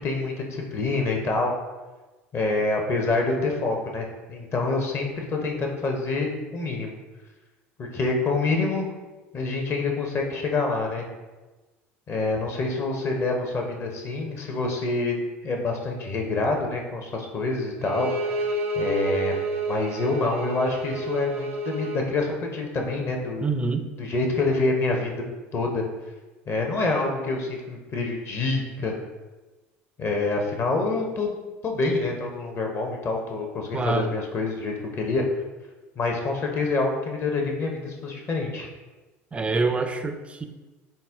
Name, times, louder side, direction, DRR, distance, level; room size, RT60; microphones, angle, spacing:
voice 1, 0.0-1.5 2.3-7.0 7.8-8.8 9.3-11.0 12.1-15.1 15.4-18.5 18.7-19.4 19.7-23.5 24.0-25.1 25.5-25.9 26.5-29.0 30.0-31.3 31.6-35.2 36.0-38.7, left 3 dB, 40° left, 2 dB, 0.8 m, -26 dB
Bowed string instrument, 17.8-22.1, right 2 dB, 85° right, 0.4 m, -29 dB
voice 2, 23.4-23.9 33.7-34.1 39.3-40.5, right 3 dB, 15° right, 7 dB, 0.3 m, -26 dB
4.1 x 2.1 x 3.5 m, 1.2 s
hypercardioid pair, 75°, 7 cm